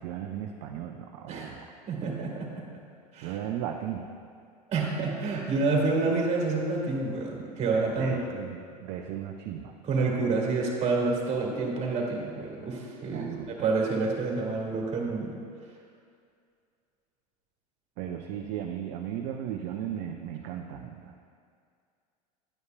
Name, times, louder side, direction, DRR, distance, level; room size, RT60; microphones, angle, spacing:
voice 1, 0.0-1.7 3.2-4.1 8.0-9.7 13.1-13.7 18.0-21.2, right 10 dB, 50° right, 3 dB, 0.6 m, -36 dB
voice 2, 1.9-2.6 3.1-3.4 4.7-8.2 9.8-15.3, right 3 dB, 35° right, -2 dB, 2.1 m, -28 dB
11.0 x 9.5 x 2.2 m, 2.3 s
hypercardioid pair, 85°, 21 cm